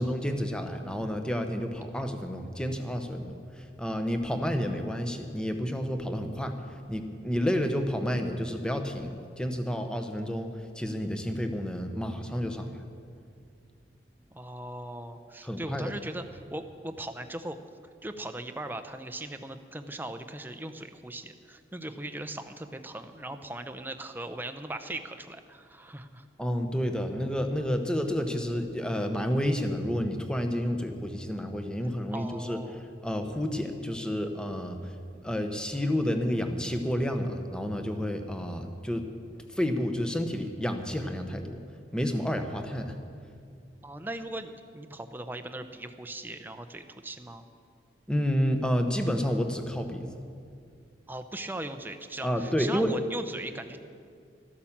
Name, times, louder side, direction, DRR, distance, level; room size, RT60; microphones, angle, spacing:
voice 1, 0.0-6.6 6.9-12.8 15.4-15.9 26.4-32.6 33.0-34.9 35.2-39.1 39.5-41.6 41.9-43.0 48.1-50.1 52.2-52.9, equal, 5° left, 6 dB, 0.9 m, -30 dB
voice 2, 14.3-17.6 18.0-26.3 32.1-32.8 43.8-47.4 51.1-53.8, right 1 dB, 10° right, 8 dB, 0.6 m, -39 dB
13.0 x 11.5 x 7.3 m, 2.3 s
head